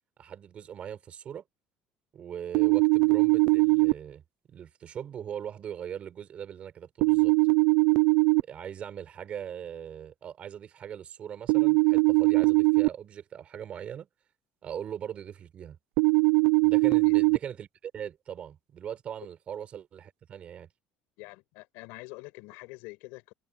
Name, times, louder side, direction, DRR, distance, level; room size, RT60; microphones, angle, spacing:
voice 1, 0.2-1.4 2.1-4.2 4.5-7.3 8.5-14.1 14.6-15.8 16.6-20.7, right 9 dB, 40° right, 4.4 m, -40 dB
sound 1, 2.5-3.9 7.0-8.4 11.5-12.9 16.0-17.4, right 34 dB, 75° right, 0.6 m, -21 dB
voice 2, 16.8-17.2 21.2-23.3, left 26 dB, 85° left, 7.2 m, -45 dB
cardioid pair, 145°, 3 cm